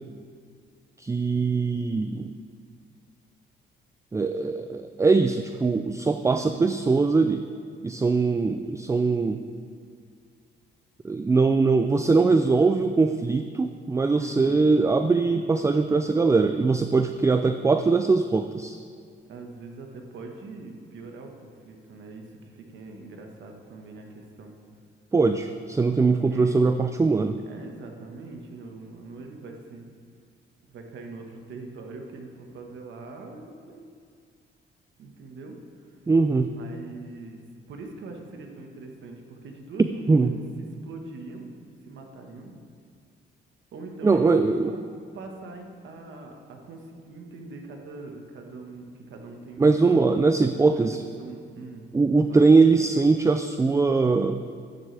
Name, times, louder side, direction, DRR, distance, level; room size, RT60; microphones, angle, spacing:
voice 1, 1.0-2.3 4.1-7.4 7.8-9.4 11.0-18.8 25.1-27.4 36.1-36.5 40.1-40.4 44.0-44.7 49.6-51.0 51.9-54.4, right 4 dB, 15° right, 9 dB, 0.4 m, -21 dB
voice 2, 6.3-6.7 14.2-14.7 19.3-24.5 26.1-26.6 27.5-29.9 30.7-34.0 35.0-35.6 35.8-35.9 36.5-37.4 37.7-40.4 40.8-41.6 41.8-42.5 43.7-44.8 45.1-49.7 50.9-51.9 52.3-52.5, right 3 dB, 70° right, 2 dB, 1.5 m, -42 dB
13.0 x 9.5 x 3.4 m, 2.2 s
cardioid pair, 90°, 20 cm